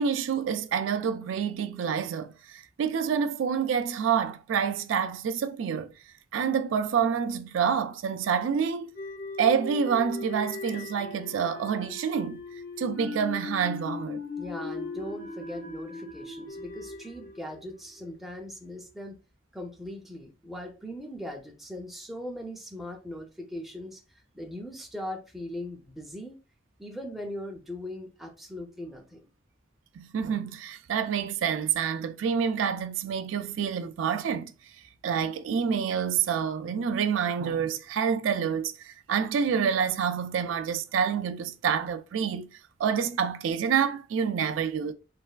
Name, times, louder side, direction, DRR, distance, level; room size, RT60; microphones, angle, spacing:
voice 1, 0.0-5.9 6.3-8.9 9.4-14.2 30.0-34.5 35.0-42.5 42.8-44.9, right 7 dB, 90° right, 0.3 m, -27 dB
sound 1, 8.9-18.2, left 3 dB, 50° left, 0.6 m, -39 dB
voice 2, 14.4-19.2 19.5-24.0 24.3-26.4 26.8-29.3, left 1 dB, ahead, 0.5 m, -39 dB
3.2 x 2.2 x 2.3 m
head